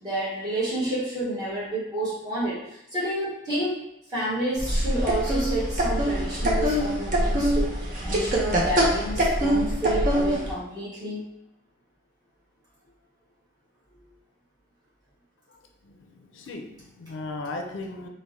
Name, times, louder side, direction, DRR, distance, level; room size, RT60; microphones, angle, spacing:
voice 1, 0.0-3.7 4.1-11.2, right 1 dB, 20° right, -9 dB, 1.1 m, -30 dB
sound 1, 4.6-10.5, equal, 45° right, 0.6 m, -24 dB
voice 2, 15.8-18.1, left 2 dB, 80° left, 4 dB, 0.4 m, -37 dB
4.4 x 2.1 x 2.7 m, 0.82 s
head